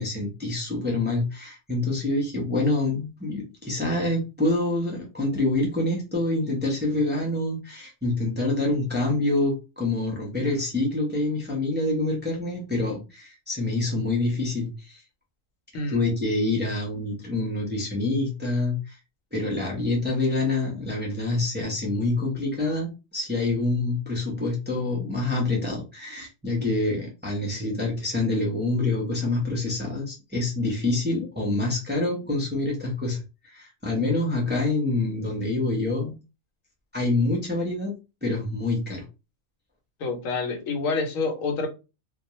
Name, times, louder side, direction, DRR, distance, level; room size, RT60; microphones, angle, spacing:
voice 1, 0.0-15.0 15.9-19.0 19.3-36.1 36.9-37.9 38.2-39.0, left 2 dB, 10° right, -2 dB, 0.5 m, -26 dB
voice 2, 40.0-41.7, left 4 dB, 85° left, 4 dB, 1.1 m, -27 dB
2.3 x 2.2 x 2.9 m, 0.29 s
omnidirectional pair, 1.3 m